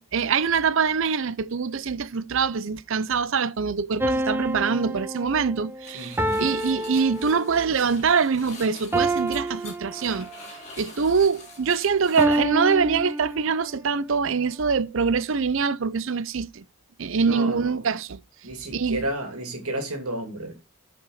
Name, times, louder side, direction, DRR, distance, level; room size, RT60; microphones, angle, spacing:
voice 1, 0.0-10.3 10.8-16.6 17.0-18.2 18.7-19.0, right 5 dB, 60° right, 0.5 m, -24 dB
sound 1, 4.0-7.7 8.9-10.5 12.2-13.7, right 1 dB, 10° right, 0.4 m, -28 dB
sound 2, 5.8-12.3, left 3 dB, 30° left, 3.1 m, -45 dB
voice 2, 5.9-6.5 17.2-17.8 18.4-20.5, right 1 dB, 80° right, 2.5 m, -32 dB
6.8 x 5.4 x 6.4 m
head